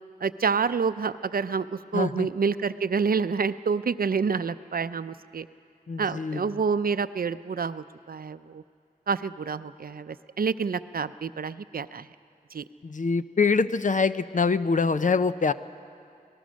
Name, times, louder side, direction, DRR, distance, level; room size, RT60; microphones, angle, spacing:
voice 1, 0.2-5.5 6.0-8.6 9.1-12.1 12.5-12.6, right 5 dB, 70° right, 13 dB, 0.5 m, -28 dB
voice 2, 1.9-2.3 5.9-6.5 12.8-15.5, left 4 dB, 55° left, 13 dB, 0.6 m, -24 dB
26.0 x 19.0 x 6.4 m, 2.4 s
wide cardioid pair, 85°, 16 cm